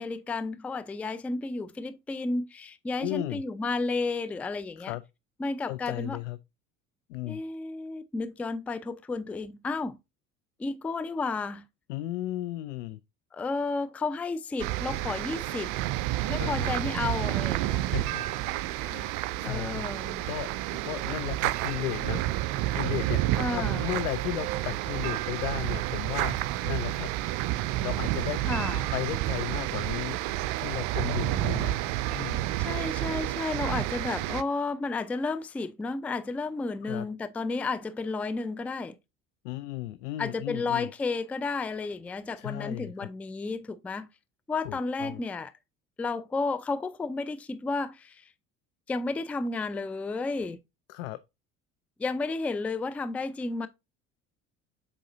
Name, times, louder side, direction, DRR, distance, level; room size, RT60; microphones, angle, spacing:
voice 1, 0.0-4.9 5.4-6.2 7.3-10.0 10.6-11.7 13.3-15.7 16.3-17.8 19.4-20.3 23.4-23.9 28.5-28.9 32.6-39.0 40.2-44.1 44.5-45.5 46.0-48.3 48.9-50.6 52.0-53.7, left 3 dB, 5° left, 0.3 m, -32 dB
voice 2, 3.0-3.4 4.8-5.0 5.7-6.4 7.1-7.4 11.9-13.0 16.4-16.7 17.7-18.2 18.8-19.8 20.2-26.4 26.6-27.1 27.8-28.4 28.9-30.2 30.6-31.8 32.1-32.4 36.9-37.1 39.4-40.9 42.4-43.1 44.6-45.2 50.9-51.2, left 16 dB, 65° left, 0.6 m, -35 dB
sound 1, 14.6-34.4, right 16 dB, 50° right, 0.6 m, -30 dB
7.5 x 4.9 x 2.6 m
figure-of-eight pair, 60°, 40 cm